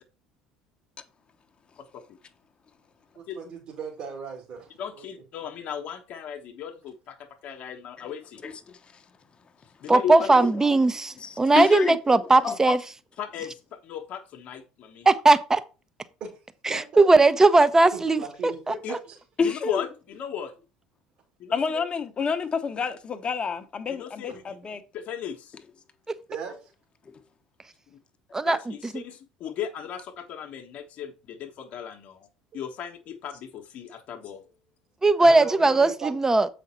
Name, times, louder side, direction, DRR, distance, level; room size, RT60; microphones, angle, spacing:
voice 1, 1.8-2.2 3.3-3.5 4.8-8.4 9.8-10.5 11.6-11.7 13.2-15.1 18.8-18.9 19.4-20.5 21.5-21.8 23.9-24.4 24.9-25.6 27.9-28.0 28.4-32.3 32.5-34.4, left 8 dB, 50° left, 1.1 m, -36 dB
voice 2, 3.2-5.1 16.2-16.3 16.7-17.0 17.9-19.2 24.3-24.4 26.3-26.7 32.5-32.6 35.2-36.1, right 6 dB, 55° right, 2.6 m, -37 dB
voice 3, 8.4-9.0 10.2-10.8 11.2-12.0 12.4-12.8 19.4-19.8 21.5-24.8, left 5 dB, 30° left, 1.0 m, -29 dB
voice 4, 9.9-12.8 15.1-15.6 16.6-18.2 18.7-18.8 26.1-26.2 28.3-28.7 35.0-36.5, right 3 dB, 15° right, 0.8 m, -19 dB
7.5 x 5.1 x 4.3 m
figure-of-eight pair, 65°, 3 cm